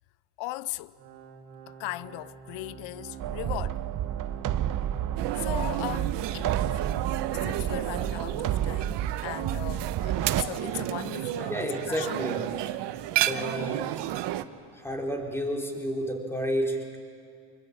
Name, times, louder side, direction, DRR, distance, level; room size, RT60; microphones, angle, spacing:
voice 1, 0.4-1.0 1.7-3.8 5.4-6.5 7.3-12.2, left 18 dB, 75° left, 0.8 m, -38 dB
Organ, 1.0-9.0 9.4-9.5 10.2-10.3, right 6 dB, 85° right, 3.4 m, -45 dB
sound 1, 3.2-10.4, right 11 dB, 45° right, 0.9 m, -30 dB
sound 2, 5.2-14.4, right 13 dB, 65° right, 1.2 m, -32 dB
voice 2, 11.5-12.4 13.2-13.9 14.7-17.0, equal, 5° left, 4.2 m, -31 dB
26.0 x 23.0 x 8.7 m
cardioid pair, 110°, 46 cm